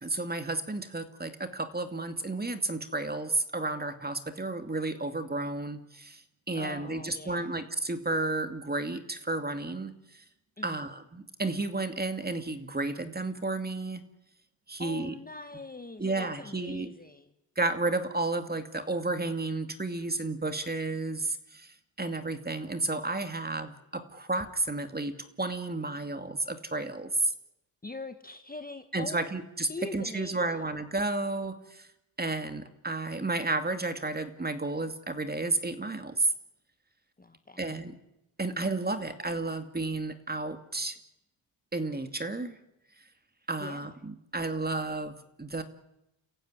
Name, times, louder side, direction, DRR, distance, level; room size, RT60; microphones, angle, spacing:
voice 1, 0.0-10.2 10.6-14.0 14.7-15.1 16.0-16.9 17.6-27.3 28.9-31.9 32.2-36.3 37.6-38.0 38.4-41.0 41.7-42.6 43.5-45.6, right 2 dB, 20° right, 8 dB, 2.4 m, -32 dB
voice 2, 6.5-7.6 10.6-10.9 14.8-17.3 27.8-29.3 29.7-30.6 37.2-37.8 43.6-43.9, left 3 dB, 15° left, 9 dB, 1.5 m, -43 dB
29.0 x 15.0 x 9.7 m, 0.89 s
cardioid pair, 80°, 50 cm